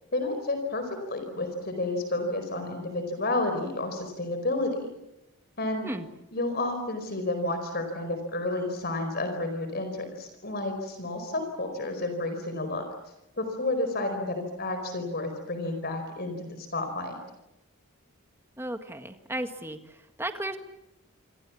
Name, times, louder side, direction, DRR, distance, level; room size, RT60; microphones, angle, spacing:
voice 1, 0.1-4.9 5.6-5.9 6.3-12.8 13.4-17.2, left 2 dB, 45° left, 7 dB, 4.7 m, -31 dB
voice 2, 18.6-19.8 20.2-20.6, right 1 dB, 10° right, 6 dB, 1.8 m, -34 dB
28.0 x 26.0 x 7.2 m, 0.90 s
head